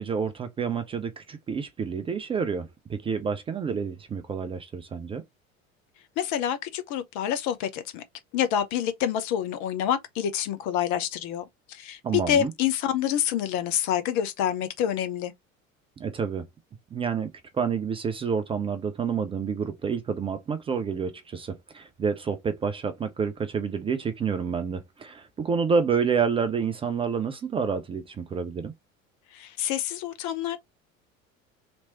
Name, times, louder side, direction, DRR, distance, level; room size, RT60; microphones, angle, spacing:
voice 1, 0.0-5.2 12.0-12.5 16.0-16.4 16.9-28.7, right 6 dB, 15° right, 0.4 m, -29 dB
voice 2, 6.2-8.0 8.3-12.0 12.3-15.3 29.3-30.6, left 10 dB, 45° left, 0.9 m, -27 dB
3.4 x 3.0 x 2.8 m
figure-of-eight pair, 70°, 41 cm